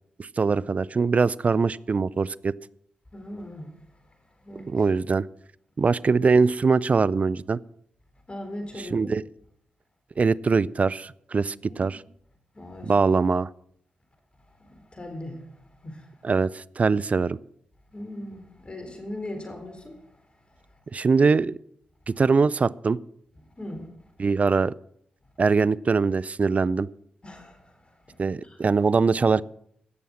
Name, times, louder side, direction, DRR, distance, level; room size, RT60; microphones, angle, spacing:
voice 1, 0.2-2.5 4.7-5.3 5.8-7.6 8.9-9.2 10.2-12.0 12.8-13.5 16.2-17.4 20.9-21.6 22.1-23.0 24.2-24.7 25.4-26.9 28.2-29.4, right 4 dB, 45° right, 0.4 m, -22 dB
voice 2, 3.1-3.7 4.4-4.7 8.3-9.1 11.7-12.0 12.5-12.9 14.6-15.5 15.8-16.2 17.9-20.0 23.6-23.9 27.2-27.9 28.4-28.6, left 1 dB, 30° left, 3.9 m, -39 dB
16.5 x 6.9 x 6.4 m
supercardioid pair, 40°, 3 cm